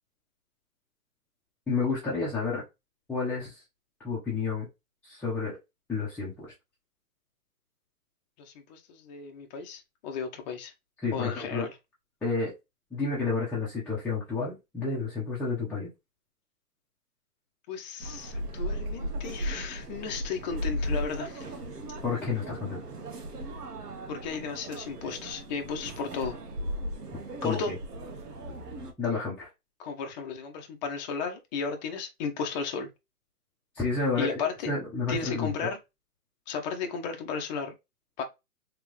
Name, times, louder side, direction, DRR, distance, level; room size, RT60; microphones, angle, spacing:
voice 1, 1.7-2.6 3.1-3.6 4.0-4.7 5.0-5.6 5.9-6.5 11.0-11.7 12.2-12.5 12.9-15.9 22.0-22.8 27.4-27.7 29.0-29.5 33.7-34.4 34.7-35.7, left 4 dB, 5° left, 1.0 m, -30 dB
voice 2, 8.4-10.7 11.1-11.7 17.7-21.5 24.1-26.4 27.4-27.7 29.8-32.9 34.2-34.7 35.1-35.8 36.5-37.7 38.2-38.3, left 5 dB, 30° left, 0.9 m, -34 dB
sound 1, 18.0-28.9, equal, 90° right, 1.4 m, -36 dB
3.6 x 3.3 x 3.2 m
hypercardioid pair, 140°, 46 cm